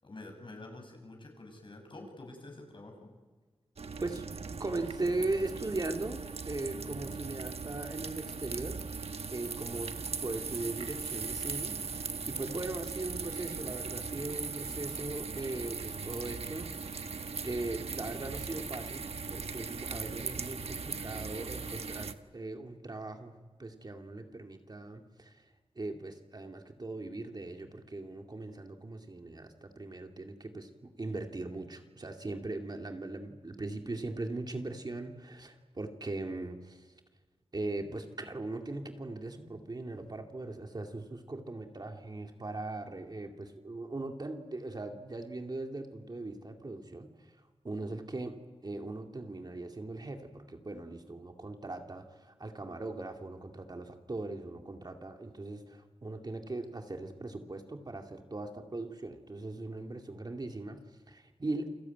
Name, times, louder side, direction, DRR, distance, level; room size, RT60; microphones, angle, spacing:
voice 1, 0.0-3.1, left 2 dB, 55° left, 3 dB, 7.8 m, -48 dB
sound 1, 3.8-22.1, right 5 dB, 80° right, 1.2 m, -39 dB
voice 2, 4.0-17.0 17.4-23.3 23.6-25.4 25.8-36.9 37.5-47.3 47.6-48.4 48.6-60.8 61.1-61.7, right 2 dB, 40° right, 4 dB, 2.4 m, -39 dB
29.0 x 21.5 x 9.3 m, 1.4 s
wide cardioid pair, 85°, 10 cm